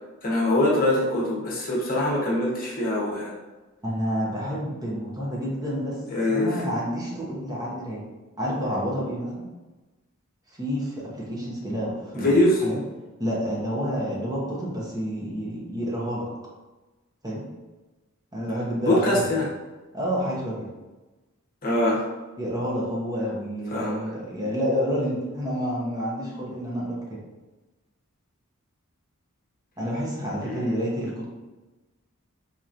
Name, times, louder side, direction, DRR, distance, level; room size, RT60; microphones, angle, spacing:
voice 1, 0.2-3.3 6.1-6.6 12.1-12.6 18.9-19.5 21.6-22.0 23.7-24.0 30.5-30.7, left 1 dB, 45° left, -4 dB, 0.9 m, -23 dB
voice 2, 3.8-6.0 6.3-8.0 8.4-9.5 10.5-12.8 13.2-16.3 17.2-17.4 18.3-19.2 19.9-20.7 22.4-27.2 29.8-31.3, equal, 20° right, -5 dB, 0.8 m, -29 dB
4.3 x 2.9 x 2.5 m, 1.1 s
head